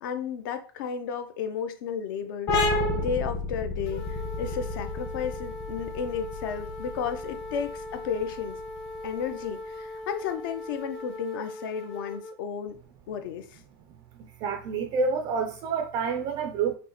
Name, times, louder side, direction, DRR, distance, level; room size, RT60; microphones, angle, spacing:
voice 1, 0.0-8.6 9.0-12.8 13.1-13.6, left 7 dB, 60° left, 0.6 m, -33 dB
sound 1, 2.5-9.8, left 2 dB, 25° left, 0.9 m, -31 dB
sound 2, 3.9-12.4, left 2 dB, 80° left, 1.1 m, -40 dB
voice 2, 14.4-16.7, right 5 dB, 30° right, 0.4 m, -28 dB
5.1 x 2.1 x 3.0 m
supercardioid pair, 155°, 13 cm